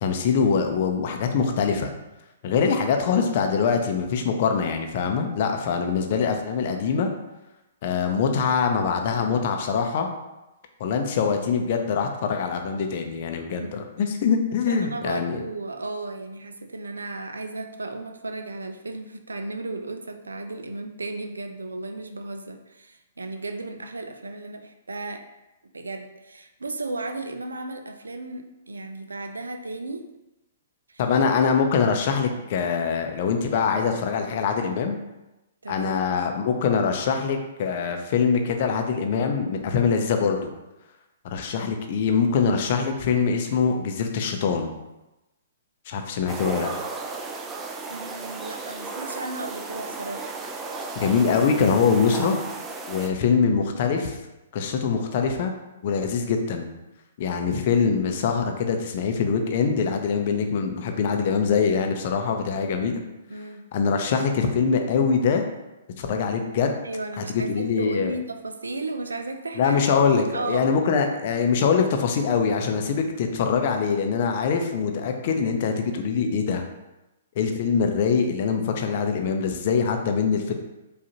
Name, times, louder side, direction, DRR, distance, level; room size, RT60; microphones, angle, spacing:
voice 1, 0.0-1.9 2.4-7.1 7.8-10.1 10.8-15.4 31.0-35.0 35.7-40.5 41.2-44.7 45.9-46.7 51.0-52.4 52.9-54.2 54.5-55.5 55.8-56.7 57.2-63.0 63.7-65.4 66.0-66.8 67.3-68.1 69.6-76.6 77.4-80.5, left 6 dB, 50° left, 5 dB, 0.5 m, -23 dB
voice 2, 14.7-25.3 25.7-30.1 30.9-31.0 32.3-32.4 35.6-35.9 47.9-50.3 63.3-63.7 66.6-69.8 70.3-70.7, right 2 dB, 80° right, 6 dB, 0.4 m, -34 dB
sound 1, 46.3-53.1, right 3 dB, 10° right, 0.5 m, -34 dB
4.8 x 2.5 x 2.9 m, 0.99 s
figure-of-eight pair, 120°, 0 cm